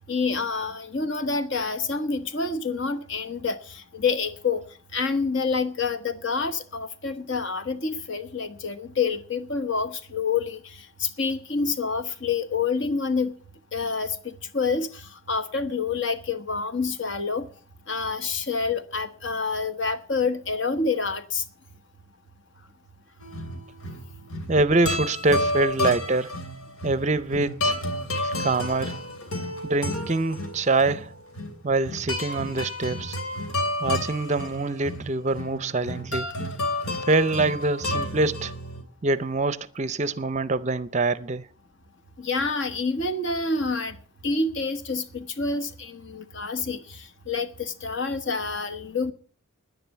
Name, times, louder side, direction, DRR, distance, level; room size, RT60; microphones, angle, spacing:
voice 1, 0.1-4.6 4.9-10.6 11.0-13.3 13.7-15.0 15.3-17.5 17.9-21.4 42.2-44.0 44.2-49.1, left 4 dB, 60° left, 1.3 m, -27 dB
sound 1, 23.2-38.8, left 1 dB, 85° left, 3.0 m, -31 dB
voice 2, 24.5-26.4 26.8-27.8 28.2-29.0 29.6-31.1 31.6-33.2 33.8-36.3 37.0-38.5 39.0-41.5, right 2 dB, 30° right, 0.5 m, -25 dB
10.5 x 10.0 x 8.1 m
head